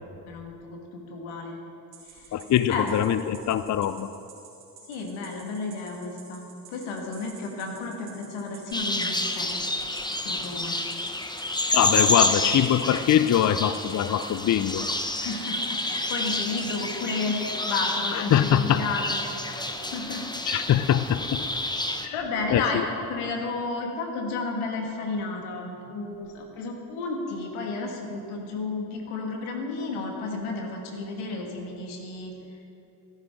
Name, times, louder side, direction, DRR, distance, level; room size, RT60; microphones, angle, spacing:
voice 1, 0.3-1.6 2.1-2.3 2.7-2.9 4.9-9.5 10.2-10.8 15.2-19.2 19.5-20.3 22.1-32.3, left 3 dB, 80° left, 1 dB, 1.7 m, -32 dB
sound 1, 1.9-16.9, right 8 dB, 80° right, 2.7 m, -49 dB
voice 2, 2.3-4.1 11.7-14.9 18.1-18.8 20.5-21.4 22.0-22.2 22.5-22.8, left 10 dB, 40° left, 13 dB, 0.5 m, -23 dB
sound 2, 8.7-22.1, left 2 dB, 10° left, 0.9 m, -29 dB
13.5 x 11.5 x 3.6 m, 2.7 s
hypercardioid pair, 45°, 49 cm